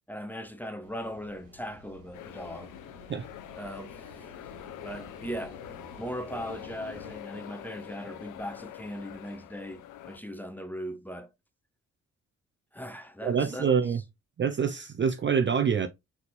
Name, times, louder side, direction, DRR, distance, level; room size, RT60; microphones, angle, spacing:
voice 1, 0.1-2.7 3.6-4.3 4.8-5.6 6.0-11.3 12.7-13.7, equal, 5° left, 0.9 m, -39 dB
sound 1, 0.8-7.2, right 1 dB, 60° right, 1.8 m, -51 dB
sound 2, 2.1-10.2, left 13 dB, 60° left, 0.5 m, -45 dB
voice 2, 13.2-14.0 14.4-15.9, right 6 dB, 35° right, 0.6 m, -26 dB
3.9 x 3.6 x 2.9 m
hypercardioid pair, 40°, 35 cm